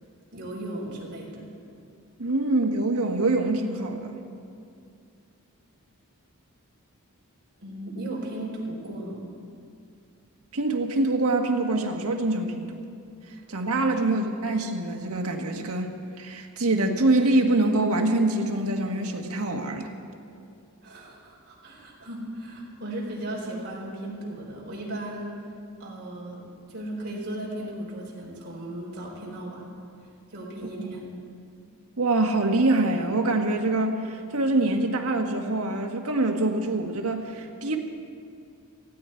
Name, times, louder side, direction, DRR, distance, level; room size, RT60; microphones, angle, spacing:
voice 1, 0.3-1.5 7.6-9.2 13.3-13.4 13.9-14.2 20.8-25.4 25.8-29.7 30.3-31.1, right 1 dB, 50° right, -3 dB, 4.2 m, -36 dB
voice 2, 2.2-4.2 10.5-12.7 13.5-15.9 16.2-19.9 30.8-30.9 32.0-37.8, right 2 dB, 80° right, 3 dB, 1.6 m, -25 dB
19.0 x 15.5 x 4.5 m, 2.4 s
head